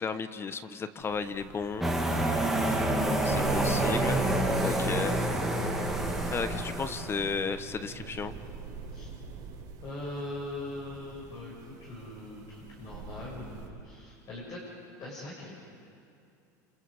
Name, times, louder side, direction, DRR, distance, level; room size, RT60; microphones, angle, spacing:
voice 1, 0.0-1.9 3.2-4.2 4.6-5.2 6.3-8.3, left 5 dB, 25° left, 11 dB, 1.2 m, -34 dB
sound 1, 1.0-13.7, right 4 dB, 50° right, 5.6 m, -42 dB
sound 2, 1.8-7.3, right 1 dB, 5° right, 3.1 m, -28 dB
voice 2, 9.8-14.7 15.0-15.6, left 2 dB, 40° left, -5 dB, 6.8 m, -41 dB
28.0 x 27.0 x 5.1 m, 2.5 s
hypercardioid pair, 100°, 9 cm